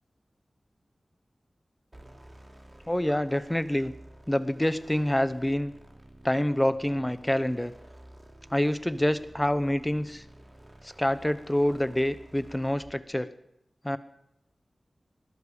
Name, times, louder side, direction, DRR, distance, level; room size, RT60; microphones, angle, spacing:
sound 1, 1.9-13.0, right 1 dB, 20° right, 2.8 m, -52 dB
voice 1, 2.9-3.9 4.3-5.7 6.2-7.7 8.5-10.2 10.8-13.3 13.8-14.0, left 1 dB, 10° left, 13 dB, 0.9 m, -27 dB
20.5 x 12.5 x 5.0 m, 0.82 s
wide cardioid pair, 85°, 0 cm